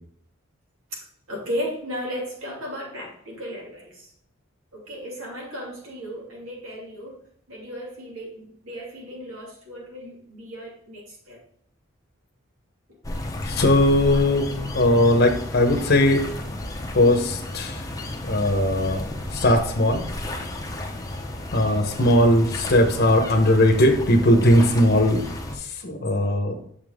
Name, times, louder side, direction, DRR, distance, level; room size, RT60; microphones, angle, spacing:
voice 1, 0.9-4.1 4.7-7.2 7.5-11.4 14.1-14.2 24.3-24.4 24.9-25.1, equal, 80° right, -2 dB, 2.6 m, -35 dB
sound 1, 13.0-25.6, left 1 dB, 15° left, 0.7 m, -32 dB
voice 2, 13.4-16.2 16.9-17.8 18.2-19.0 19.3-20.0 21.5-25.2 25.6-26.6, left 1 dB, 50° left, 3 dB, 0.9 m, -19 dB
6.9 x 5.3 x 3.6 m, 0.66 s
head